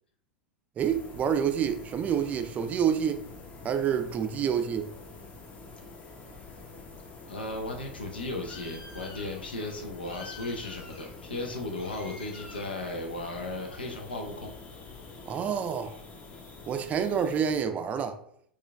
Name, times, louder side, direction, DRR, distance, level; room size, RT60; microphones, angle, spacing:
sound 1, 0.8-17.6, left 3 dB, 25° left, 0.8 m, -47 dB
voice 1, 0.8-3.2 3.6-4.9 15.3-16.0 16.7-18.2, right 8 dB, 25° right, 0.4 m, -28 dB
Bird, 6.2-15.2, left 4 dB, 50° left, 1.3 m, -49 dB
voice 2, 7.3-14.5, left 2 dB, 75° left, 0.7 m, -36 dB
4.5 x 2.4 x 3.4 m
figure-of-eight pair, 85°, 5 cm